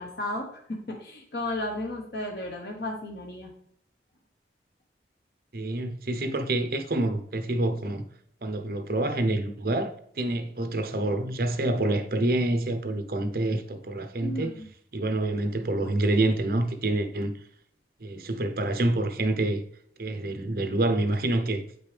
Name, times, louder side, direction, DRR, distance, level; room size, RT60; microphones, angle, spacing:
voice 1, 0.0-3.5 14.2-14.7, left 1 dB, 65° left, 1.1 m, -34 dB
voice 2, 5.5-8.0 8.4-14.5 14.9-17.3 18.0-19.6 20.0-21.6, right 2 dB, 55° right, 0.8 m, -27 dB
8.3 x 5.3 x 3.4 m
head